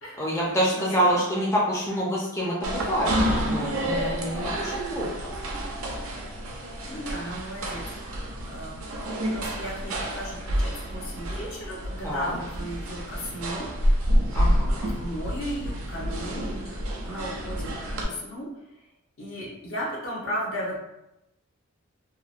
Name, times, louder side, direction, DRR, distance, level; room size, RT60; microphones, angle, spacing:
voice 1, 0.2-3.2 3.4-5.1 12.0-12.4 14.3-14.9, equal, 15° left, -6 dB, 0.4 m, -27 dB
voice 2, 0.7-1.2 6.9-8.8 9.3-13.7 15.0-18.5 19.2-20.8, equal, 65° left, -4 dB, 0.8 m, -35 dB
sound 1, 2.6-18.0, equal, 75° right, 0.5 m, -29 dB
2.8 x 2.0 x 2.4 m, 0.88 s
head